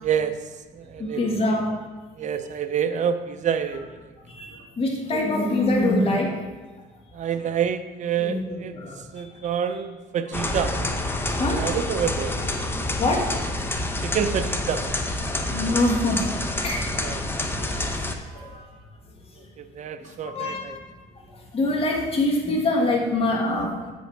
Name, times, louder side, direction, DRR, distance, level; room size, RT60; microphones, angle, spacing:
voice 1, 0.0-0.3 0.8-1.2 2.2-3.8 7.1-8.8 9.1-10.7 11.4-12.3 14.0-14.8 17.0-17.2 19.6-20.7, right 8 dB, 45° right, 9 dB, 0.6 m, -27 dB
voice 2, 1.0-1.7 4.4-4.5 4.8-6.3 8.2-9.0 10.3-10.5 11.4-11.6 13.0-13.2 15.5-16.8 17.5-17.9 20.3-20.7 21.5-23.9, left 2 dB, 35° left, 0 dB, 1.7 m, -24 dB
sound 1, 10.3-18.1, left 1 dB, 15° left, 0.7 m, -28 dB
7.5 x 5.4 x 4.6 m, 1.3 s
cardioid pair, 110°, 17 cm